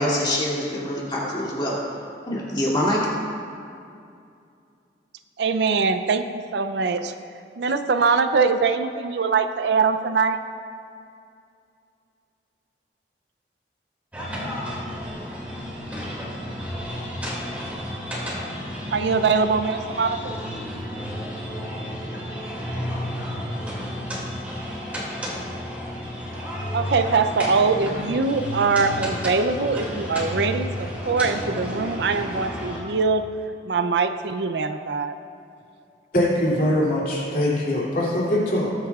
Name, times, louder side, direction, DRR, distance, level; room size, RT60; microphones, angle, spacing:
voice 1, 0.0-1.7 2.3-3.0, left 1 dB, 25° left, -6 dB, 2.4 m, -24 dB
voice 2, 5.4-7.1 7.6-10.4 18.9-20.3 26.7-33.2 33.7-35.1, right 4 dB, 65° right, 9 dB, 0.5 m, -22 dB
sound 1, 14.1-32.8, equal, 10° right, 2.3 m, -32 dB
voice 3, 36.1-38.7, left 1 dB, 50° left, -5 dB, 2.7 m, -22 dB
20.5 x 8.1 x 2.4 m, 2.5 s
head